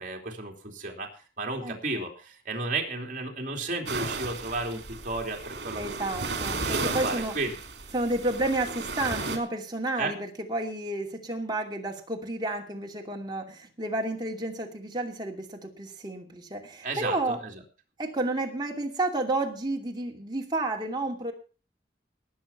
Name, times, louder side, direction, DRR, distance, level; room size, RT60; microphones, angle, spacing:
voice 1, 0.0-5.8 6.2-7.6 10.0-10.1 16.8-17.5, right 2 dB, 45° right, 1 dB, 3.2 m, -33 dB
voice 2, 1.6-2.1 5.7-7.4 7.9-17.4 18.0-21.3, right 2 dB, 25° right, 1 dB, 2.6 m, -31 dB
sound 1, 3.9-9.4, right 3 dB, 70° right, 2.8 m, -34 dB
19.0 x 7.2 x 5.7 m, 0.37 s
head